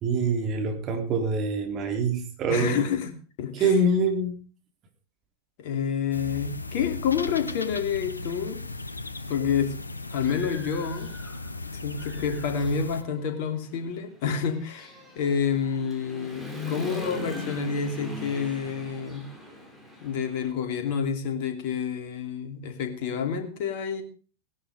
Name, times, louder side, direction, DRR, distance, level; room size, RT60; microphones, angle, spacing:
voice 1, 0.0-2.9 3.5-4.3, right 3 dB, 35° right, 4 dB, 3.8 m, -25 dB
voice 2, 2.5-3.7 5.6-8.6 9.3-9.7 10.1-11.1 11.7-19.3 20.0-24.0, left 7 dB, 45° left, 6 dB, 3.0 m, -29 dB
sound 1, 6.1-13.0, left 2 dB, 80° left, 1.1 m, -36 dB
Human voice / Motorcycle, 9.2-9.3 9.8-11.6 11.9-20.5, left 2 dB, 5° right, 4.7 m, -40 dB
17.5 x 11.0 x 5.1 m, 0.37 s
figure-of-eight pair, 90°, 0 cm